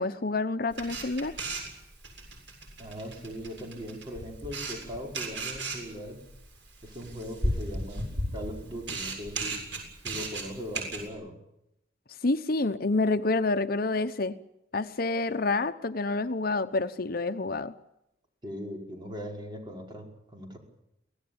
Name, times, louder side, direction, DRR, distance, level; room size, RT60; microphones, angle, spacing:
voice 1, 0.0-1.4 12.2-14.4 14.7-17.7, left 3 dB, 55° left, 10 dB, 0.9 m, -28 dB
Camera, 0.7-11.1, right 1 dB, 80° right, 7.2 m, -36 dB
voice 2, 2.8-6.3 6.8-9.6 10.0-11.4 18.4-20.1 20.3-20.6, equal, 25° right, 1 dB, 5.3 m, -39 dB
25.0 x 18.0 x 8.8 m, 0.85 s
head